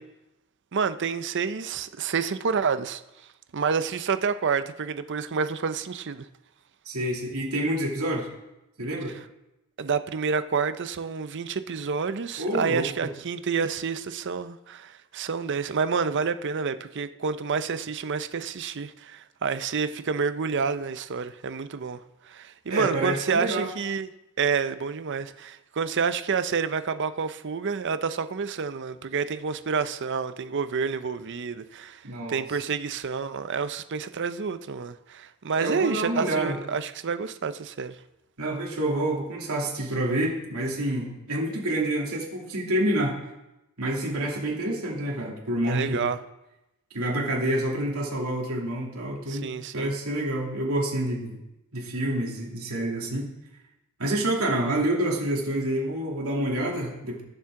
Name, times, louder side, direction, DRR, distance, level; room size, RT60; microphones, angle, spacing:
voice 1, 0.7-3.0 3.5-6.3 9.8-22.0 22.2-24.1 24.4-32.0 32.3-38.0 45.6-46.2 49.3-49.9, right 5 dB, 55° right, 0.6 m, -29 dB
voice 2, 6.8-8.3 8.8-9.1 12.4-12.9 22.7-23.7 32.0-32.4 35.6-36.6 38.4-43.2 43.8-46.0 46.9-49.5 49.7-51.4 51.7-53.3 54.0-57.2, right 1 dB, 85° right, 2.7 m, -28 dB
17.5 x 7.3 x 3.7 m
head